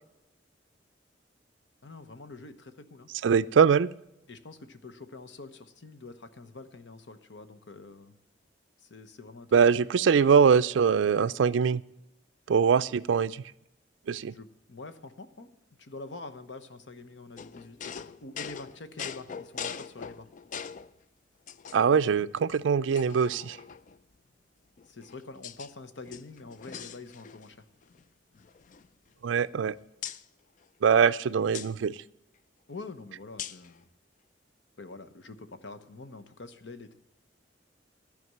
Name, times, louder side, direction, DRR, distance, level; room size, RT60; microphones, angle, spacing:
voice 1, 1.8-3.1 4.3-8.2 8.8-9.6 14.1-15.5 15.8-20.3 24.9-27.6 32.7-33.9 34.8-36.9, left 3 dB, 75° left, 10 dB, 0.9 m, -46 dB
voice 2, 3.2-3.9 9.5-11.8 12.5-13.4 14.1-14.3 21.7-23.6 29.2-29.7 30.8-32.0, right 6 dB, 85° right, 18 dB, 0.4 m, -23 dB
sound 1, 17.4-20.9 21.5-22.1 22.5-22.6 22.9-24.0 24.8-25.7 26.0-27.6 27.8-28.0 28.3-29.6 30.0-30.2 31.5-31.7 33.4-33.7, left 7 dB, 45° left, 0.4 m, -42 dB
14.0 x 5.1 x 7.9 m, 0.89 s
head